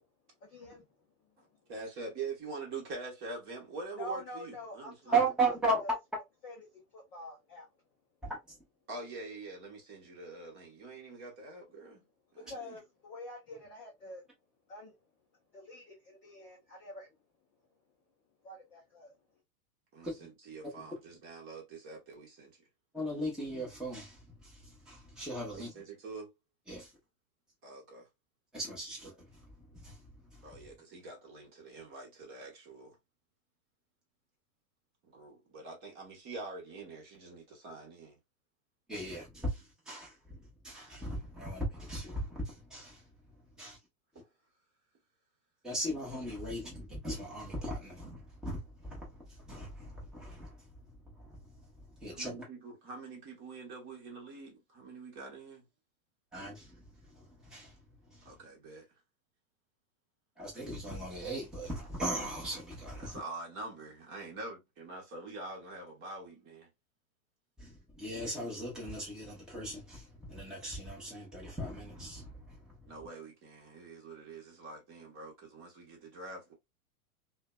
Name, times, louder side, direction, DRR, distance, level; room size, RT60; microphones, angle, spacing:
voice 1, 0.4-0.9 1.4-1.5 3.9-5.2 5.4-5.5 5.8-5.9 6.4-7.7 12.4-14.3 14.7-14.9 15.5-17.1 18.4-19.1, left 1 dB, 15° left, 0.4 m, -46 dB
voice 2, 1.7-5.1 8.9-12.0 12.3-12.8 19.9-22.6 25.5-26.3 27.6-28.1 30.4-33.0 35.0-38.2 44.1-44.3 52.1-55.7 58.2-58.9 63.0-66.7 72.8-76.5, right 3 dB, 25° right, 1.1 m, -45 dB
voice 3, 5.1-5.8 8.2-8.6 20.0-20.3 22.9-25.7 26.7-26.9 28.5-30.0 30.3-30.4 38.9-43.0 43.6-43.8 45.6-49.1 49.4-50.6 51.2-51.4 52.0-52.4 56.3-57.7 58.1-58.3 60.4-63.2 67.6-72.6, right 2 dB, ahead, 0.8 m, -37 dB
2.5 x 2.2 x 2.2 m
hypercardioid pair, 140°, 45 cm